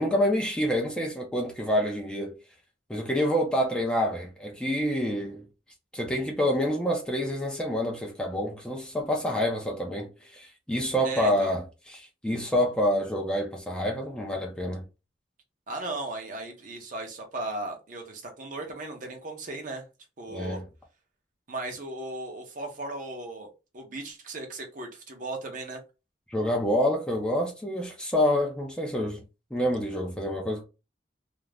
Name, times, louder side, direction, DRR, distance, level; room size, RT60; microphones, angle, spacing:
voice 1, 0.0-2.4 2.9-5.4 5.9-14.8 20.3-20.6 26.3-29.2 29.5-30.6, equal, 5° left, 0.5 m, -27 dB
voice 2, 11.0-11.5 15.7-19.8 20.2-20.6 21.5-23.5 23.7-25.8, right 2 dB, 45° right, 0.7 m, -36 dB
2.4 x 2.0 x 3.3 m
head